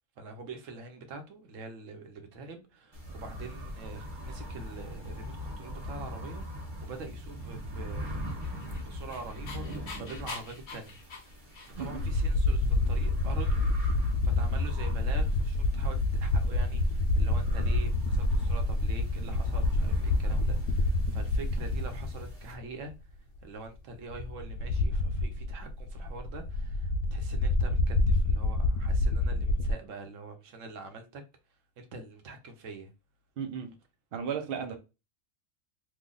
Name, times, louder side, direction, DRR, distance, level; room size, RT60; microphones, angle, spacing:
voice 1, 0.2-8.3 8.7-11.3 11.6-22.9 23.4-31.2 31.8-32.9 34.7-34.8, right 3 dB, 75° right, 1.1 m, -45 dB
sound 1, 2.9-22.5, left 1 dB, 20° right, 1.0 m, -42 dB
Dog, 8.2-12.1, left 4 dB, 45° left, 0.7 m, -44 dB
voice 2, 11.7-12.1 33.4-33.7 34.1-34.8, right 7 dB, 60° right, 0.7 m, -35 dB
sound 2, 12.0-22.6 22.9-23.0 24.1-29.7, left 2 dB, 75° left, 0.9 m, -27 dB
3.1 x 2.2 x 3.8 m
omnidirectional pair, 1.3 m